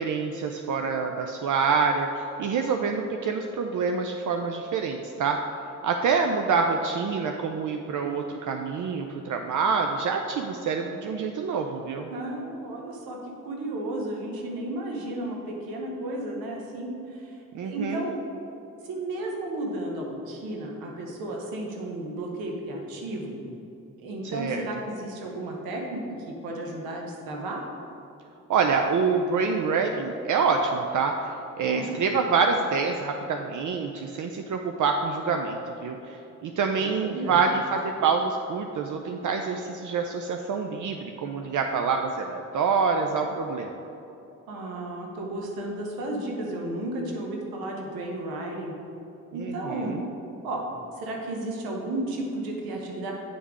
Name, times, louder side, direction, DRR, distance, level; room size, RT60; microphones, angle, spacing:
voice 1, 0.0-5.4 5.8-12.1 17.5-18.1 24.2-24.6 28.5-43.7 49.3-50.1, right 5 dB, 60° right, 4 dB, 0.5 m, -26 dB
voice 2, 12.1-13.2 13.4-18.2 18.8-23.4 24.0-27.6 31.6-32.0 36.7-37.4 44.5-48.7 49.3-49.9 50.4-50.6 51.0-53.1, right 1 dB, 90° right, 0 dB, 1.0 m, -33 dB
8.5 x 3.6 x 4.8 m, 2.8 s
supercardioid pair, 50°, 35 cm